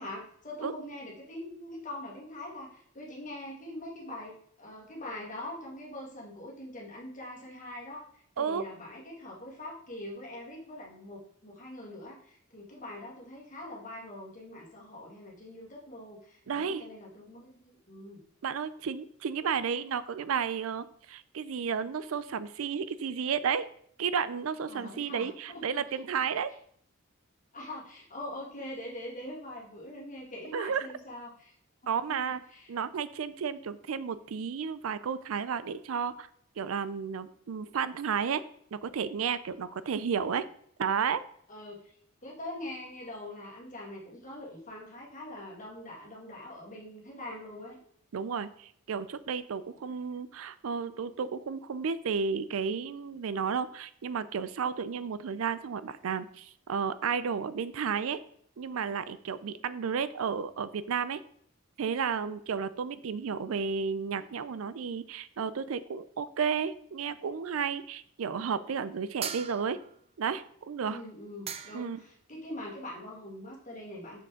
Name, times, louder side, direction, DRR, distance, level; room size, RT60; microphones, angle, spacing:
voice 1, 0.0-8.0 8.4-18.2 24.7-25.8 26.1-26.2 27.5-31.5 31.8-32.2 32.5-32.8 39.6-39.7 41.5-41.9 42.2-47.8 70.8-74.2, left 1 dB, 40° left, -3 dB, 2.1 m, -43 dB
voice 2, 16.5-16.9 18.4-23.7 24.0-26.5 30.5-30.9 31.9-32.4 32.7-36.3 36.6-38.4 38.7-40.4 40.8-41.2 48.1-58.2 58.6-61.2 61.8-69.8 70.2-71.0 71.7-72.0, right 6 dB, 85° right, 15 dB, 0.4 m, -32 dB
sound 1, 69.2-70.0 71.1-71.2 71.5-72.0, right 7 dB, 30° right, 0.5 m, -39 dB
6.6 x 6.4 x 3.7 m, 0.65 s
head